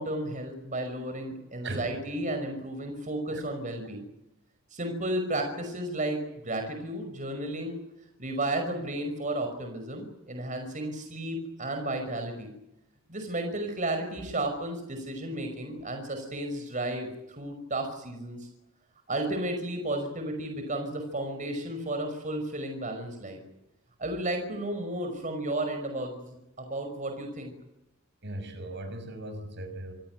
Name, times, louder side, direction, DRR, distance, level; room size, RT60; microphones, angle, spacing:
voice 1, 0.0-4.0 4.7-7.8 8.2-12.5 13.1-18.5 19.1-23.4 24.0-27.5, right 1 dB, 40° right, 5 dB, 5.5 m, -33 dB
voice 2, 28.2-29.9, right 1 dB, 60° right, 8 dB, 6.2 m, -38 dB
27.0 x 18.0 x 9.2 m, 0.88 s
head